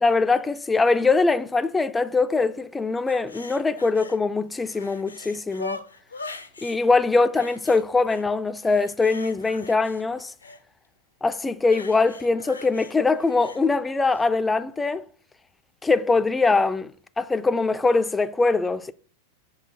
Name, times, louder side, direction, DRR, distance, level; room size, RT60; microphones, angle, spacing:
voice 1, 0.0-5.8 6.6-10.3 11.2-15.0 15.8-18.9, left 3 dB, 10° left, 0.3 m, -22 dB
sound 1, 3.1-4.2 4.5-6.8 7.4-8.2 8.6-10.6 11.6-13.6 14.1-14.2, left 3 dB, 75° left, 0.5 m, -41 dB
5.3 x 4.4 x 4.6 m
figure-of-eight pair, 90°, 0 cm